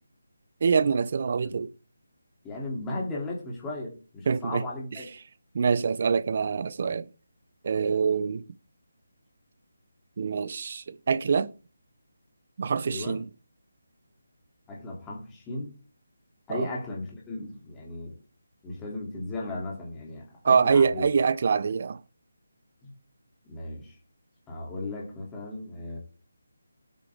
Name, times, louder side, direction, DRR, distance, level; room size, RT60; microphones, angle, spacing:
voice 1, 0.6-1.7 4.3-4.6 5.5-7.1 7.6-8.4 10.2-11.5 12.6-13.3 16.5-16.7 20.4-22.0, right 5 dB, 40° right, 0.6 m, -25 dB
voice 2, 2.4-5.1 12.9-13.2 14.7-15.8 16.5-18.2 18.6-21.1 22.8-22.9 23.5-23.9 24.5-26.0, left 2 dB, 10° left, 2.9 m, -36 dB
20.0 x 8.3 x 3.6 m
figure-of-eight pair, 170°, 0 cm